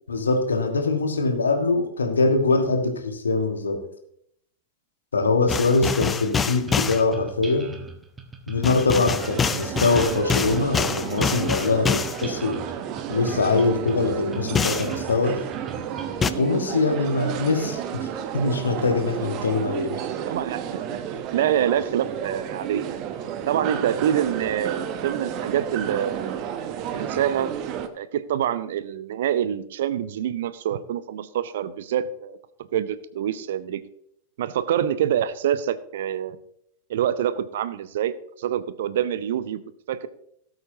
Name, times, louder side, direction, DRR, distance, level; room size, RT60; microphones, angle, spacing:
voice 1, 0.1-3.9 5.1-7.7 8.5-12.6 13.1-15.4 16.4-20.0, left 3 dB, 70° left, 5 dB, 1.5 m, -23 dB
sound 1, 5.5-7.0 8.6-12.2 14.6-14.9 16.2-16.3, left 6 dB, 20° left, 0.5 m, -25 dB
sound 2, 6.7-16.3, right 2 dB, 15° right, 1.3 m, -40 dB
sound 3, 9.2-27.9, right 9 dB, 40° right, 0.9 m, -32 dB
voice 2, 20.3-20.8 21.3-22.9 23.5-26.3 26.9-27.5 27.9-32.4 32.7-33.8 34.4-36.4 36.9-38.1 38.4-39.6 39.9-40.1, right 10 dB, 60° right, 15 dB, 0.6 m, -26 dB
17.5 x 7.9 x 2.8 m, 0.71 s
figure-of-eight pair, 90°, 0 cm